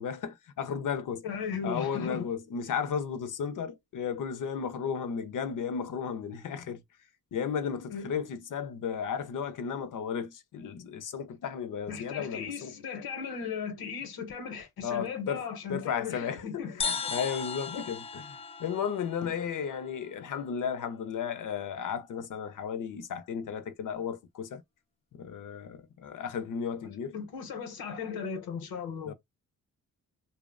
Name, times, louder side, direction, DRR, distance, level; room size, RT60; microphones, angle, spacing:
voice 1, 0.0-1.2 1.6-6.8 7.3-12.7 14.8-15.4 15.7-24.6 25.1-27.1 29.1-29.2, left 7 dB, 60° left, 0.7 m, -34 dB
voice 2, 1.2-2.3 7.9-8.1 11.9-17.1 17.7-17.9 26.8-29.1, left 6 dB, 85° left, 0.9 m, -37 dB
sound 1, 16.8-20.3, left 5 dB, 20° left, 0.3 m, -37 dB
2.8 x 2.1 x 2.4 m
cardioid pair, 80°, 36 cm